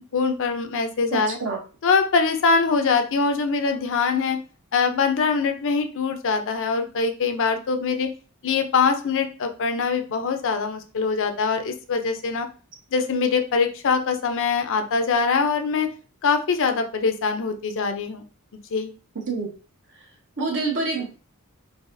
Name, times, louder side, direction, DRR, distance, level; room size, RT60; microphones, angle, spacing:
voice 1, 0.1-1.4 1.8-4.4 4.7-8.1 8.4-12.5 12.9-15.9 16.2-18.2 18.7-18.9, left 5 dB, 60° left, 7 dB, 0.5 m, -23 dB
voice 2, 1.1-1.6 19.3-19.5 20.4-21.0, right 3 dB, 55° right, -1 dB, 1.1 m, -26 dB
4.0 x 2.8 x 2.5 m, 0.36 s
head